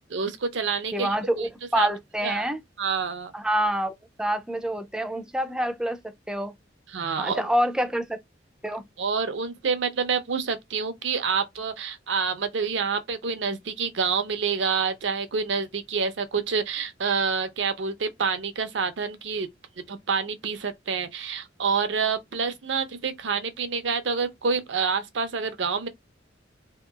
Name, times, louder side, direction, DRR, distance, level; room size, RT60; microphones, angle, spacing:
voice 1, 0.1-1.5 1.7-1.9 2.2-2.5 2.8-3.3 6.9-7.5 9.0-19.5 19.9-25.9, right 5 dB, 75° right, 0.6 m, -27 dB
voice 2, 0.9-2.6 3.3-6.0 6.3-6.5 7.2-8.2 8.6-8.8, equal, 5° right, 0.3 m, -27 dB
2.8 x 2.7 x 2.3 m
head